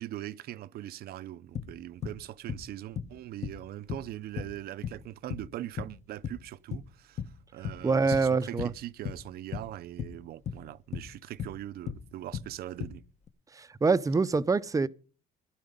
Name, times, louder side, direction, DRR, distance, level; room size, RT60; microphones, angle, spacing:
voice 1, 0.0-13.0, right 13 dB, 65° right, 0.6 m, -41 dB
sound 1, 1.6-2.2 2.5-2.7 3.0-3.6 3.9-5.1 5.3-6.0 6.2-6.9 7.2-7.4 7.6-8.3 8.6-9.7 10.0-11.1 11.4-12.6 12.8-13.3, left 8 dB, 40° left, 1.1 m, -37 dB
voice 2, 7.8-8.7 13.6-14.9, right 4 dB, 20° right, 0.6 m, -25 dB
16.0 x 11.5 x 5.2 m
cardioid pair, 110°, 17 cm